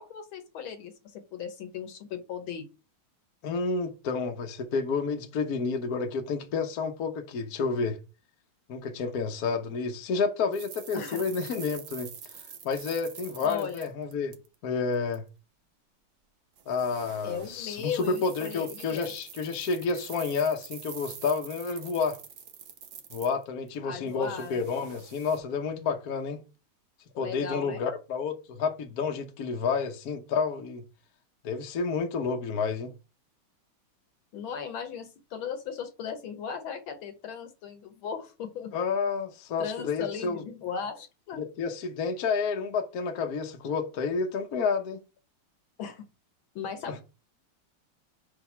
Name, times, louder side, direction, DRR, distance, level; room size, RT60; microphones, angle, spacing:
voice 1, 0.0-2.7 10.9-11.2 13.4-13.9 17.2-19.1 23.8-24.7 27.1-27.8 34.3-38.7 39.6-41.4 45.8-46.1 46.6-47.0, left 7 dB, 70° left, 1.8 m, -37 dB
voice 2, 3.4-8.0 8.7-12.1 12.6-14.3 14.6-15.2 16.7-22.2 23.1-26.4 27.2-30.8 31.4-32.9 38.7-40.4 41.3-45.0 46.9-47.0, left 5 dB, 55° left, 1.2 m, -30 dB
sound 1, 10.5-14.6 14.9-15.2 16.6-23.7 24.1-25.4, right 8 dB, 55° right, 1.1 m, -46 dB
5.1 x 4.8 x 6.0 m
omnidirectional pair, 2.4 m